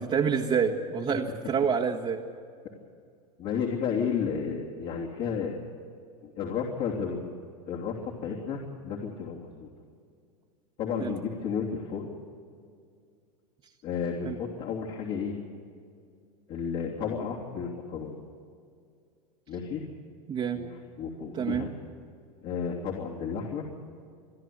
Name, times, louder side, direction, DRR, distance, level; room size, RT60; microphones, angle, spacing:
voice 1, 0.1-2.2 11.0-11.1 14.2-14.4 20.3-20.6 21.3-21.6, right 6 dB, 30° right, -3 dB, 1.6 m, -27 dB
voice 2, 3.4-5.6 6.2-9.7 10.8-12.1 13.8-15.4 16.5-18.2 19.5-19.8 20.5-21.7 22.4-23.7, left 6 dB, 50° left, -2 dB, 3.2 m, -32 dB
27.5 x 10.5 x 9.5 m, 2.2 s
hypercardioid pair, 110°, 19 cm